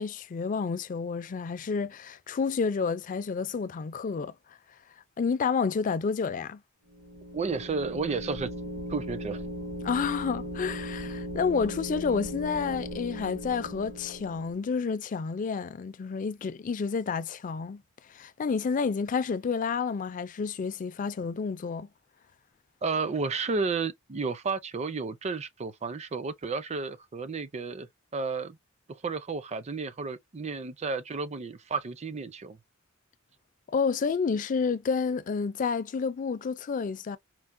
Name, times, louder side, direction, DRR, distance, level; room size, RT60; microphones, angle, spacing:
voice 1, 0.0-4.4 5.2-6.6 9.8-21.9 33.7-37.2, left 5 dB, 40° left, 0.4 m, -30 dB
sound 1, 6.9-14.6, equal, 75° right, 1.5 m, -38 dB
voice 2, 7.3-8.5 8.9-9.4 22.8-27.9 28.1-28.6 29.0-32.6, right 4 dB, 35° right, 0.5 m, -32 dB
4.5 x 2.1 x 2.5 m
head